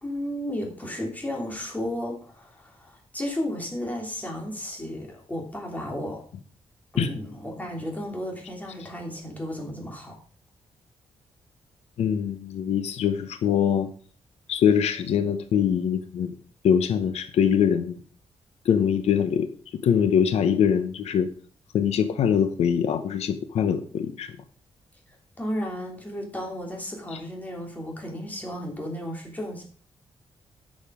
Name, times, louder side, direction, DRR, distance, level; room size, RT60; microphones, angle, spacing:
voice 1, 0.0-6.2 6.9-10.2 25.4-29.7, equal, 15° left, 0 dB, 3.2 m, -33 dB
voice 2, 12.0-13.9 14.5-16.3 16.6-18.0 18.6-19.5 19.8-21.3 21.7-24.3 27.1-27.2, left 8 dB, 85° left, 10 dB, 0.8 m, -23 dB
10.5 x 6.5 x 4.9 m, 0.43 s
wide cardioid pair, 120°, 11 cm